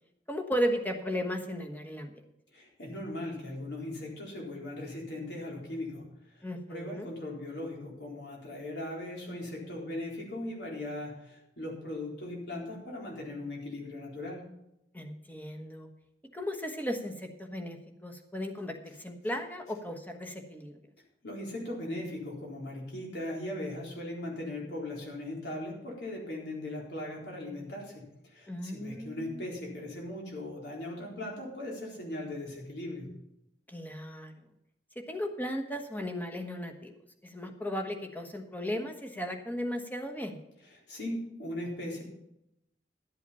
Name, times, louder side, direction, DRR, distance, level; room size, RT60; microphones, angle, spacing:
voice 1, 0.3-2.1 6.4-7.1 14.9-15.9 16.3-20.8 28.5-29.4 33.7-34.3 34.9-36.9 37.2-40.4, equal, 10° left, 5 dB, 1.2 m, -35 dB
voice 2, 2.5-6.0 6.7-14.5 21.2-33.2 40.9-42.0, left 1 dB, 75° left, -2 dB, 4.0 m, -39 dB
12.0 x 8.3 x 5.6 m, 0.83 s
head